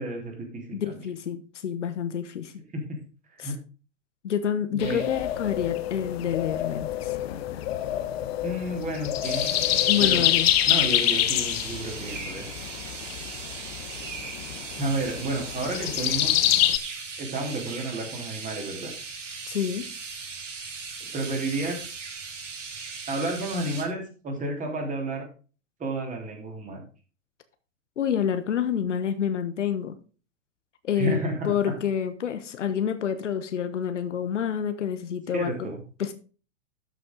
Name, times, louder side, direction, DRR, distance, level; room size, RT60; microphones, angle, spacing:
voice 1, 0.0-1.1 2.7-3.0 3.3-3.5 4.7-5.0 8.4-9.4 10.0-10.3 10.6-12.5 14.8-16.4 17.2-18.9 21.1-21.8 22.6-25.2 25.8-26.8 30.9-31.5 35.3-35.8, right 1 dB, 20° right, 3.5 m, -31 dB
voice 2, 0.7-2.5 3.4-3.5 4.2-7.6 9.9-10.5 19.5-19.9 28.0-30.0 30.8-35.7 36.0-36.1, left 8 dB, 65° left, 1.3 m, -28 dB
sound 1, 4.8-16.8, left 12 dB, 50° left, 1.1 m, -26 dB
sound 2, 9.2-23.9, right 5 dB, 70° right, 2.2 m, -38 dB
12.5 x 6.4 x 3.9 m
figure-of-eight pair, 100°, 38 cm